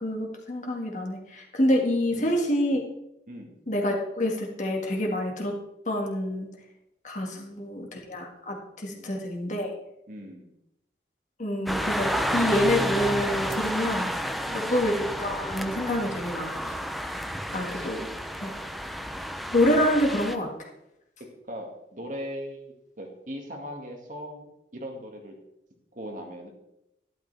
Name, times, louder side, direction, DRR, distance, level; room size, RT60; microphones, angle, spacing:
voice 1, 0.0-2.8 3.7-5.6 5.9-6.5 7.0-9.7 11.4-16.6 17.5-18.1 18.4-18.5 19.5-20.5, left 1 dB, 45° left, 1 dB, 1.8 m, -27 dB
voice 2, 3.3-3.6 7.3-7.7 8.8-9.2 10.1-10.5 14.4-14.7 17.7-18.0 18.5-18.7 21.4-24.5 24.7-25.4 25.9-26.5, equal, 45° right, 2 dB, 1.9 m, -40 dB
sound 1, 11.7-20.4, equal, ahead, 0.5 m, -31 dB
12.0 x 12.0 x 3.4 m, 0.84 s
head